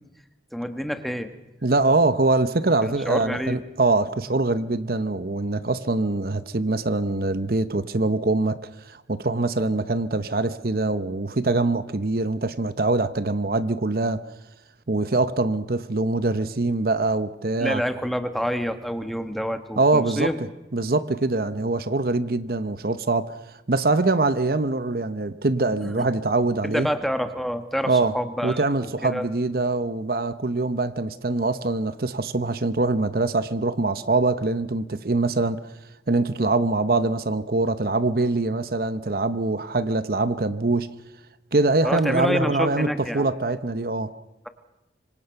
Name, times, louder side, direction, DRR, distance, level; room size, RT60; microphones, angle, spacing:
voice 1, 0.5-1.3 2.8-3.6 17.6-20.4 25.8-25.9 26.6-29.3 41.8-43.3, equal, ahead, 1.3 m, -28 dB
voice 2, 1.6-14.2 14.9-17.8 19.8-20.3 20.7-23.3 23.7-26.9 27.8-28.1 28.4-35.6 36.1-40.9 41.5-44.1, right 2 dB, 55° right, 0.9 m, -23 dB
26.0 x 24.5 x 5.8 m
head